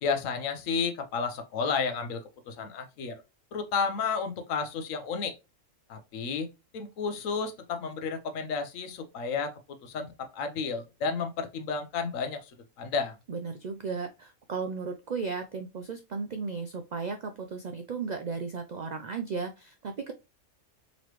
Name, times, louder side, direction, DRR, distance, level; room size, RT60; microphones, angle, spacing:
voice 1, 0.0-2.2 2.5-3.1 3.5-5.3 5.9-6.5 6.7-9.5 9.8-10.1 10.3-12.5 12.8-13.1, left 5 dB, 85° left, 1.1 m, -31 dB
voice 2, 13.3-20.1, right 5 dB, 85° right, 0.3 m, -35 dB
4.0 x 3.1 x 3.0 m
omnidirectional pair, 1.3 m